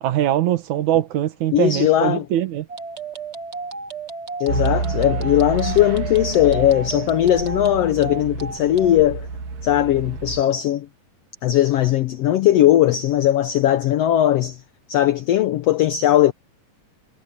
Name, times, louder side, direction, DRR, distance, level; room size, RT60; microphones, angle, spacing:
voice 1, 0.0-2.7, right 12 dB, 65° right, 2.6 m, -22 dB
voice 2, 1.5-2.2 4.4-9.3 9.6-10.9 11.4-14.6 14.9-16.3, left 12 dB, 75° left, 1.5 m, -18 dB
sound 1, 2.7-9.0, right 4 dB, 30° right, 1.2 m, -33 dB
sound 2, 4.5-10.4, right 4 dB, 80° right, 4.1 m, -29 dB
omnidirectional pair, 3.8 m